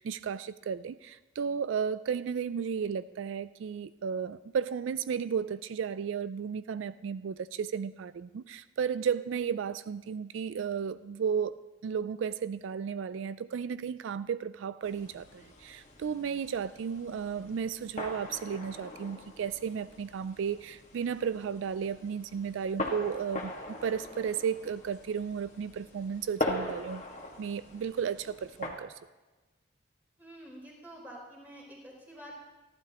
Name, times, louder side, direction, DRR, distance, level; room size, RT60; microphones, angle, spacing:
voice 1, 0.0-27.0 27.4-28.9, right 7 dB, 80° right, 15 dB, 0.3 m, -34 dB
sound 1, 14.8-28.7, left 1 dB, 35° left, 1.7 m, -41 dB
voice 2, 30.2-32.5, right 1 dB, 10° right, -5 dB, 4.1 m, -48 dB
28.0 x 11.5 x 3.0 m, 1.2 s
head